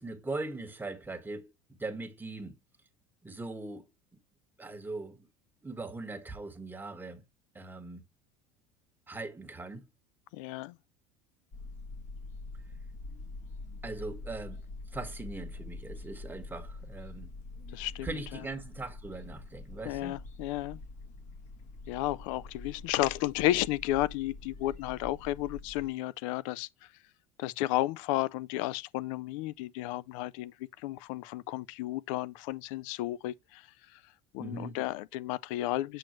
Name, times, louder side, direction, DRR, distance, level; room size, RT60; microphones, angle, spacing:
voice 1, 0.0-2.6 3.2-3.9 4.6-5.3 5.6-7.2 7.5-8.0 9.1-9.9 13.8-14.6 14.9-17.3 18.0-20.2 34.4-34.8, right 2 dB, 10° right, 1.4 m, -40 dB
voice 2, 10.3-10.8 17.7-18.4 19.8-20.8 21.9-26.9 27.4-36.0, left 16 dB, 75° left, 0.4 m, -33 dB
sound 1, 11.5-25.9, left 3 dB, 50° left, 1.7 m, -45 dB
7.9 x 4.4 x 3.0 m
supercardioid pair, 100°, 17 cm